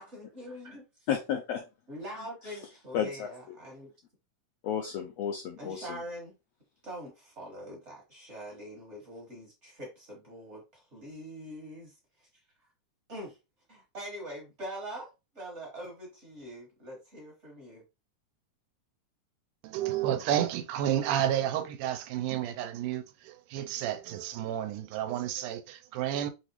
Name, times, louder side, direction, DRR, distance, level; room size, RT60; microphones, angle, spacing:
voice 1, 0.0-1.1 1.9-3.9 5.6-6.3 6.8-12.7 13.1-13.4 13.7-15.1 15.3-17.8, equal, 45° right, 0.9 m, -43 dB
voice 2, 1.1-1.6 2.4-2.6 2.9-3.3 4.6-6.0, left 8 dB, 80° left, 1.4 m, -32 dB
voice 3, 19.6-26.3, right 11 dB, 85° right, 2.1 m, -31 dB
6.0 x 3.0 x 3.0 m
omnidirectional pair, 3.7 m